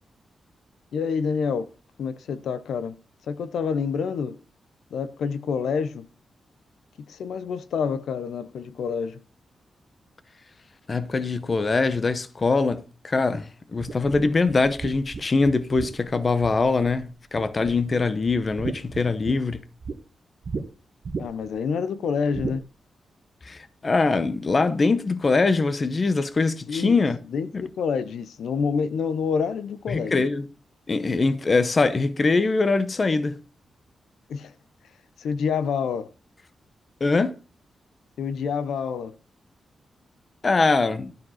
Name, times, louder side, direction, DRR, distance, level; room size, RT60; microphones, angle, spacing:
voice 1, 0.9-1.7 2.0-2.9 3.3-4.4 4.9-6.1 7.1-9.2 21.2-22.6 26.7-26.9 27.3-30.3 34.3-34.5 35.2-36.1 38.2-39.1, left 6 dB, 90° left, 0.7 m, -27 dB
voice 2, 10.9-19.6 23.4-27.2 27.5-27.6 29.9-30.5 30.9-33.4 37.0-37.3 40.4-41.1, left 3 dB, 30° left, 0.8 m, -23 dB
sound 1, 13.8-17.0 17.4-18.0 18.3-20.0 20.4-20.6 21.0-21.6 22.3-22.6, right 4 dB, 45° right, 1.2 m, -34 dB
12.0 x 5.3 x 5.6 m
wide cardioid pair, 150°, 0 cm